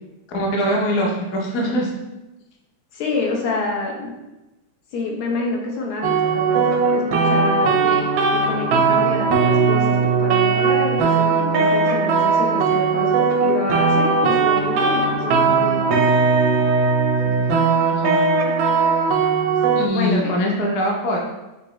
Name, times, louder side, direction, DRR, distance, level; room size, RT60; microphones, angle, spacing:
voice 1, 0.3-1.9 7.8-8.0 17.2-17.6 17.9-18.2 19.7-21.2, equal, 60° left, -1 dB, 1.0 m, -23 dB
voice 2, 2.9-4.1 4.9-7.8 8.3-15.8 19.9-20.3, left 3 dB, 80° left, 0 dB, 1.7 m, -27 dB
sound 1, 6.0-19.9, right 4 dB, 75° right, 0.9 m, -18 dB
5.9 x 2.9 x 3.1 m, 1.0 s
omnidirectional pair, 2.3 m